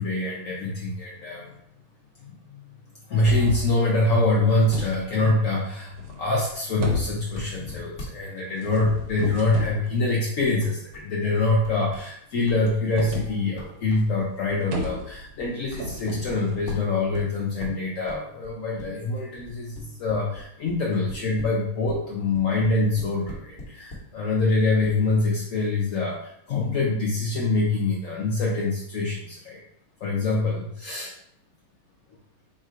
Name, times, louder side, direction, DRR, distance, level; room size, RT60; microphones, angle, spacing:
voice 1, 0.0-1.5 2.2-2.7 3.1-29.6 30.0-31.1, left 2 dB, 75° left, -3 dB, 0.7 m, -25 dB
sound 1, 3.1-3.7 4.2-5.3 5.9-6.5 6.8-7.6 8.6-9.8 13.0-13.3 13.7-13.8 14.0-14.1 14.4-15.3 15.8-17.0, equal, 85° right, 1.6 m, -32 dB
sound 2, 7.3-8.1 8.3-8.4 8.7-8.8 9.5-10.1 10.5-11.2 11.6-12.1 12.4-24.1 24.4-24.5 24.8-25.0, left 1 dB, 30° left, 1.0 m, -43 dB
3.6 x 2.5 x 4.2 m, 0.72 s
omnidirectional pair, 2.2 m